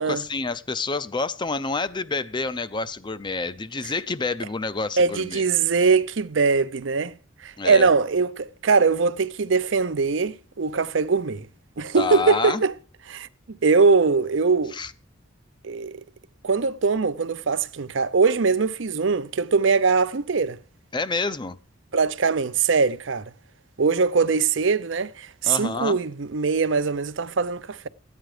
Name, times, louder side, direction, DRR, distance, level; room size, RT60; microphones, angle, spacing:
voice 1, 0.0-5.4 7.6-7.9 11.9-12.6 14.7-14.9 20.9-21.6 25.4-26.0, left 3 dB, 25° left, 0.5 m, -28 dB
voice 2, 5.0-7.1 7.4-11.5 11.8-12.7 13.1-14.8 15.6-16.0 16.4-20.6 21.9-23.3 23.8-27.9, right 4 dB, 70° right, 0.6 m, -22 dB
14.0 x 9.2 x 4.9 m
head